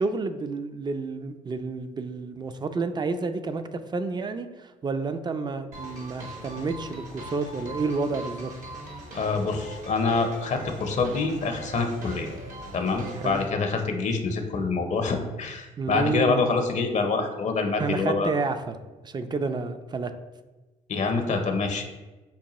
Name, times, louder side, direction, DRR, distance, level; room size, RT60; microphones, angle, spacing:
voice 1, 0.0-8.5 13.2-13.4 15.8-16.5 17.8-18.8 19.0-20.1, right 4 dB, 30° right, 10 dB, 0.4 m, -30 dB
sound 1, 5.7-13.5, right 1 dB, 55° right, 0.9 m, -41 dB
voice 2, 9.1-12.3 12.7-18.3 20.9-21.8, left 4 dB, 50° left, 5 dB, 0.6 m, -26 dB
5.4 x 2.2 x 3.0 m, 1.2 s
supercardioid pair, 60°, 16 cm